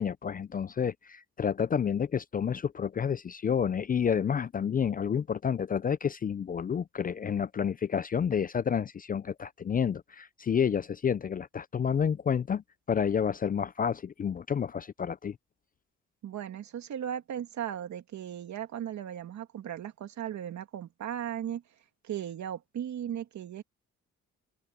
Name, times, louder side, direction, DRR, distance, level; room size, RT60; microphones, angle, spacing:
voice 1, 0.0-12.6 12.9-15.4, left 7 dB, 30° left, 0.4 m, -29 dB
voice 2, 16.2-21.6 22.0-23.6, right 10 dB, 70° right, 2.6 m, -37 dB
cardioid pair, 90°, 30 cm